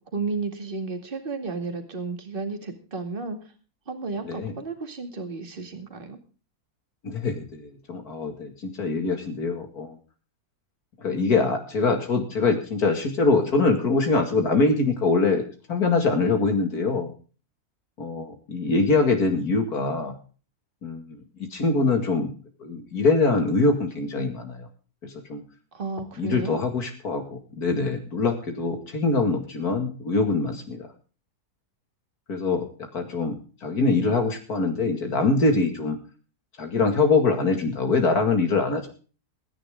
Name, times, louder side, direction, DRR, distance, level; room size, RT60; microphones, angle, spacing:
voice 1, 0.1-3.4 3.9-6.2 25.7-26.6, right 4 dB, 35° right, 6 dB, 2.4 m, -32 dB
voice 2, 4.2-4.5 7.0-10.0 11.0-15.4 15.7-17.1 18.0-20.1 20.8-22.3 22.6-24.7 25.0-25.4 26.2-30.9 32.3-32.7 32.9-33.4 33.6-36.0 36.6-38.9, left 3 dB, 70° left, 4 dB, 2.7 m, -23 dB
23.0 x 10.5 x 3.6 m, 0.37 s
omnidirectional pair, 1.6 m